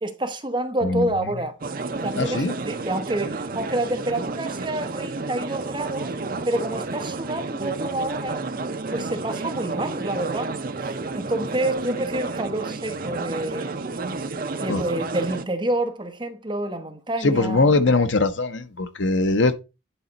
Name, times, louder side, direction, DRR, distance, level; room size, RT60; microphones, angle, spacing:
voice 1, 0.0-1.5 1.9-6.1 6.5-8.4 8.9-10.5 10.8-13.8 14.6-17.7, right 1 dB, 25° right, 1.0 m, -28 dB
sound 1, 1.6-15.5, right 3 dB, 45° right, 0.6 m, -31 dB
voice 2, 2.2-2.5 14.7-14.8 17.2-19.5, left 3 dB, 70° left, 0.8 m, -21 dB
10.0 x 4.2 x 4.0 m
head